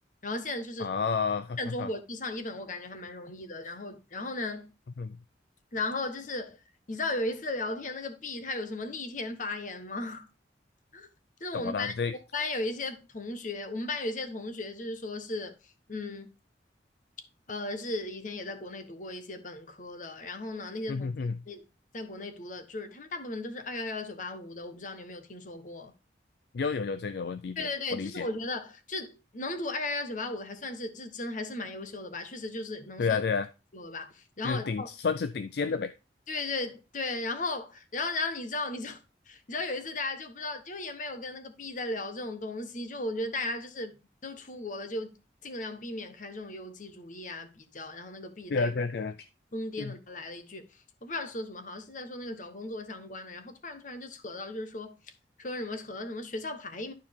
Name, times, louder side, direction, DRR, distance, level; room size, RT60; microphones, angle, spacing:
voice 1, 0.2-0.9 1.6-4.7 5.7-6.6 6.9-10.3 10.9-11.1 11.4-11.9 12.3-16.3 17.5-21.1 21.5-21.6 21.9-25.9 27.6-33.2 33.7-34.9 36.3-39.0 39.3-43.9 44.2-45.2 45.4-48.7 49.5-50.7 51.0-55.0 55.4-56.9, left 2 dB, 45° left, 1.2 m, -36 dB
voice 2, 0.8-1.9 5.0-5.2 11.5-12.1 20.9-21.4 26.5-28.3 33.0-33.5 34.4-35.9 48.5-49.2 49.8-49.9, left 5 dB, 60° left, 0.4 m, -30 dB
11.5 x 4.6 x 3.5 m
head